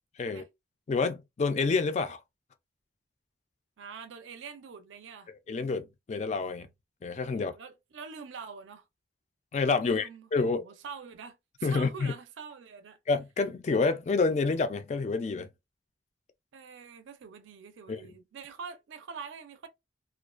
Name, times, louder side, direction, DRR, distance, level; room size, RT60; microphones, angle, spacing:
voice 1, 0.9-2.2 5.5-6.7 7.0-7.6 9.5-10.6 11.6-12.1 13.1-15.5 17.9-18.0, left 4 dB, 35° left, 0.3 m, -28 dB
voice 2, 3.8-5.3 7.3-8.8 9.8-13.0 16.5-19.7, right 6 dB, 80° right, 0.4 m, -45 dB
2.4 x 2.2 x 2.3 m
head